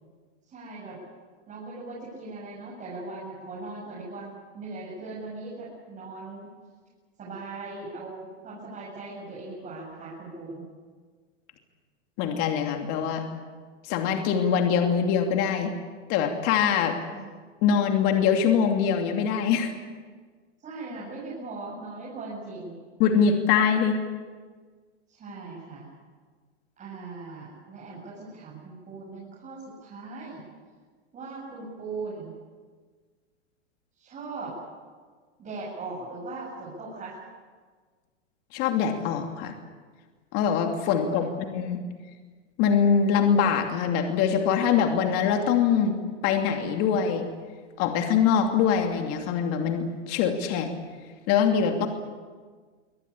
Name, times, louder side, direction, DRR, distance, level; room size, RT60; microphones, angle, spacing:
voice 1, 0.4-1.0 1.5-6.5 7.2-10.6 13.1-13.3 17.1-17.3 20.6-22.8 25.1-25.9 26.8-30.5 31.1-32.3 34.0-34.6 35.4-37.2 41.0-41.5, right 3 dB, 20° right, -6 dB, 7.6 m, -39 dB
voice 2, 12.2-13.2 13.8-15.7 16.1-17.0 17.6-19.7 23.0-24.0 38.5-39.5 40.3-41.3 41.5-41.8 42.6-45.9 46.2-47.3 47.8-50.7 51.3-51.9, left 7 dB, 40° left, 4 dB, 2.8 m, -23 dB
24.5 x 18.5 x 8.6 m, 1.5 s
hypercardioid pair, 140°, 37 cm